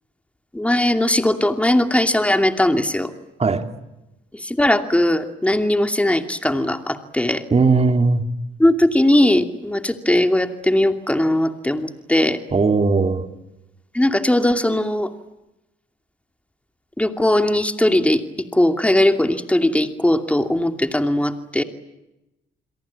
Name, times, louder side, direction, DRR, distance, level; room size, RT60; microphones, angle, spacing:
voice 1, 0.5-3.1 4.3-7.4 8.6-12.4 13.9-15.1 17.0-18.2 18.5-21.6, left 1 dB, 5° left, 2.7 m, -19 dB
voice 2, 7.5-8.2 12.5-13.3, right 4 dB, 30° right, 2.8 m, -17 dB
29.0 x 22.5 x 8.6 m
cardioid pair, 90°, 20 cm